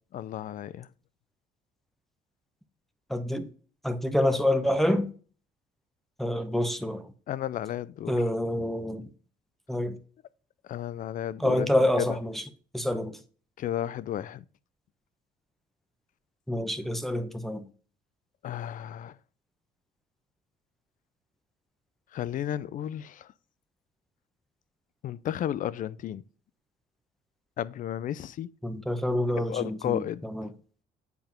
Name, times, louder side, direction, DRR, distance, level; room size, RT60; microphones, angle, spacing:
voice 1, 0.1-0.9 7.3-8.1 10.7-12.1 13.6-14.4 18.4-19.2 22.1-23.3 25.0-26.2 27.6-28.5 29.5-30.3, left 11 dB, 50° left, 0.5 m, -33 dB
voice 2, 3.1-3.5 3.8-5.1 6.2-7.1 8.1-9.1 9.7-10.0 11.4-12.4 12.7-13.2 16.5-17.6 28.6-30.5, left 1 dB, ahead, 0.9 m, -27 dB
8.2 x 4.5 x 5.1 m
cardioid pair, 110°, 17 cm